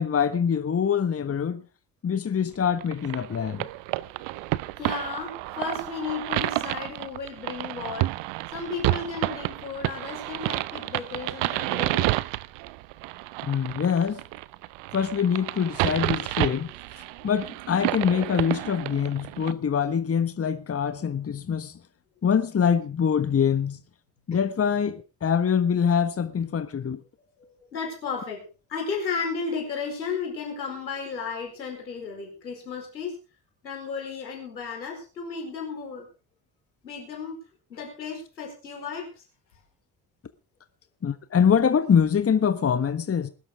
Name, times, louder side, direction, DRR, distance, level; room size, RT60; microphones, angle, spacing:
voice 1, 0.0-1.6 2.0-3.7 13.4-14.2 14.9-16.7 17.2-21.8 22.2-23.8 24.3-27.0 41.0-43.3, left 7 dB, 30° left, 1.4 m, -24 dB
sound 1, 2.8-19.5, right 19 dB, 60° right, 0.9 m, -30 dB
voice 2, 4.8-8.1 8.5-12.1 27.2-28.4 28.7-33.2 33.6-36.1 36.8-37.4 37.7-39.2, left 5 dB, 85° left, 4.8 m, -34 dB
21.0 x 12.5 x 3.7 m
figure-of-eight pair, 50°, 49 cm